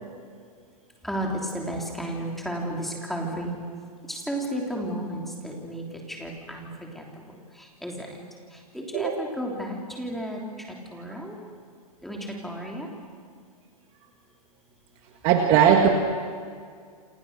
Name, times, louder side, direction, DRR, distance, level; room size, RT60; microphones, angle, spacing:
voice 1, 1.0-3.5 4.1-6.7 6.9-7.0 7.8-8.2 8.7-10.4 10.9-11.4 12.0-12.2 12.4-12.9, right 1 dB, ahead, -1 dB, 3.2 m, -32 dB
voice 2, 15.2-15.9, right 8 dB, 25° right, 3 dB, 1.8 m, -18 dB
28.0 x 27.5 x 6.7 m, 2.1 s
hypercardioid pair, 165°, 21 cm